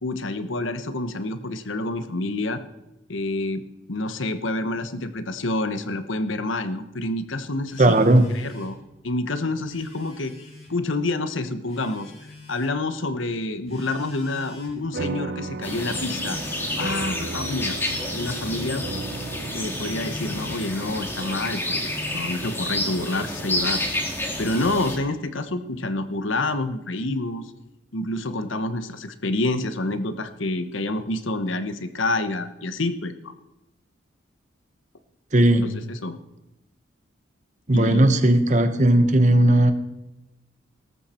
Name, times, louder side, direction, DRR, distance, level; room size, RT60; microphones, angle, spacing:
voice 1, 0.0-2.6 3.1-8.0 8.3-8.8 9.0-10.3 10.7-12.1 12.5-16.4 16.8-17.8 18.1-18.9 19.5-23.9 24.4-27.5 27.9-33.3 35.5-36.2 37.7-38.1, left 2 dB, 75° left, 11 dB, 1.1 m, -28 dB
Telephone, 7.7-8.8 9.5-10.7 11.7-12.7 13.7-14.8 15.7-16.8 17.7-18.8 19.7-20.8 21.7-22.8, left 1 dB, 30° left, 5.0 m, -42 dB
voice 2, 7.8-8.2 35.3-35.7 37.7-39.7, right 1 dB, 35° right, 9 dB, 1.1 m, -17 dB
sound 1, 14.9-23.7, right 3 dB, 55° right, 0.6 m, -37 dB
sound 2, 15.6-25.0, left 1 dB, 10° left, 2.0 m, -29 dB
18.0 x 14.0 x 4.4 m, 0.96 s
head